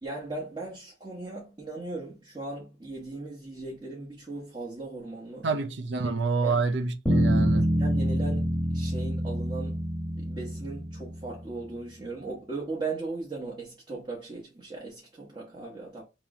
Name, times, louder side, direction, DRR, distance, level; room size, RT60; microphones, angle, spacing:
voice 1, 0.0-5.5 6.4-6.6 7.5-9.8 10.1-16.0, right 3 dB, 25° right, 0.9 m, -38 dB
voice 2, 5.4-7.8, right 4 dB, 65° right, 0.6 m, -28 dB
sound 1, 7.1-11.4, equal, 5° left, 1.1 m, -26 dB
3.0 x 3.0 x 3.6 m
head